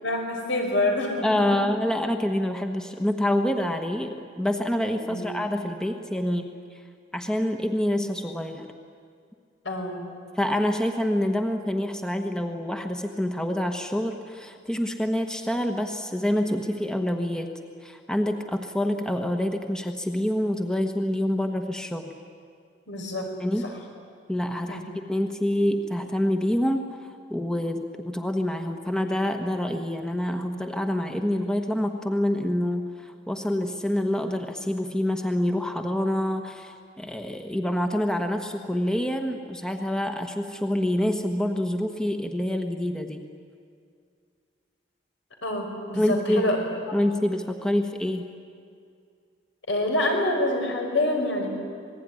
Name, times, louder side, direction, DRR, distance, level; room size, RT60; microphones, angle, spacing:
voice 1, 0.0-1.2 5.1-5.3 9.6-10.1 22.9-23.3 23.6-23.7 24.7-24.9 45.4-46.6 49.7-51.5, left 1 dB, 85° left, 2 dB, 5.4 m, -26 dB
voice 2, 1.2-6.5 7.1-8.7 10.3-17.5 17.8-22.1 23.4-23.7 24.3-43.2 45.9-46.5 46.9-48.2, left 1 dB, 5° left, 5 dB, 1.1 m, -27 dB
27.0 x 20.0 x 9.9 m, 2.3 s
head